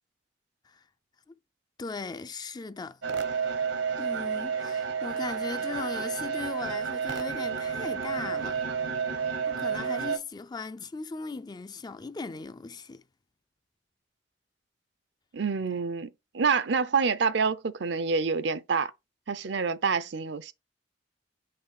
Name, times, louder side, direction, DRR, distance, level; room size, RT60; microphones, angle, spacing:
voice 1, 1.8-3.0 3.4-3.5 4.0-8.6 9.5-13.0, left 4 dB, 20° left, 0.4 m, -38 dB
sound 1, 3.0-10.2, right 6 dB, 80° right, 1.2 m, -31 dB
voice 2, 15.3-18.9 19.3-20.5, right 5 dB, 65° right, 0.6 m, -27 dB
5.8 x 4.0 x 4.8 m
head